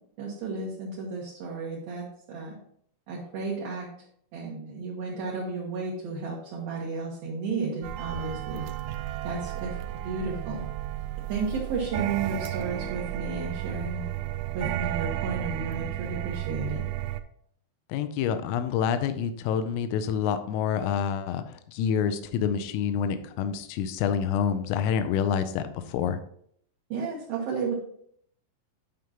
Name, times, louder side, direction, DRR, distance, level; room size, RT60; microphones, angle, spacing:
voice 1, 0.2-2.6 3.1-3.9 4.3-8.7 9.2-9.8 10.0-10.6 11.3-14.0 14.5-16.8 26.9-27.7, right 4 dB, 70° right, -4 dB, 2.4 m, -33 dB
sound 1, 7.8-17.2, right 13 dB, 85° right, 3.0 m, -33 dB
voice 2, 17.9-26.2, left 7 dB, 85° left, 10 dB, 3.3 m, -27 dB
11.0 x 5.2 x 2.9 m, 0.66 s
omnidirectional pair, 5.9 m